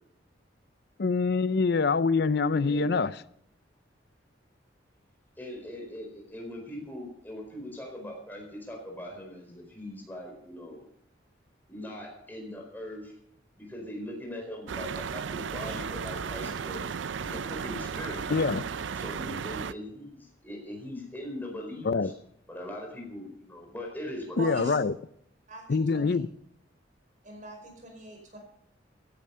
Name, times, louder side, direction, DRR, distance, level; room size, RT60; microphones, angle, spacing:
voice 1, 1.0-3.1 18.3-18.6 21.8-22.1 24.4-24.9 25.7-26.3, left 4 dB, 60° left, 0.5 m, -25 dB
voice 2, 2.6-2.9 5.4-10.8 11.7-13.1 13.6-16.8 17.2-18.5 18.9-22.1 22.5-24.4, left 1 dB, 10° left, 4.4 m, -40 dB
sound 1, 14.7-19.7, right 6 dB, 85° right, 0.5 m, -35 dB
voice 3, 24.4-24.8 25.5-25.6 25.9-26.2 27.2-28.4, right 2 dB, 45° right, 4.9 m, -40 dB
17.0 x 11.0 x 5.6 m
head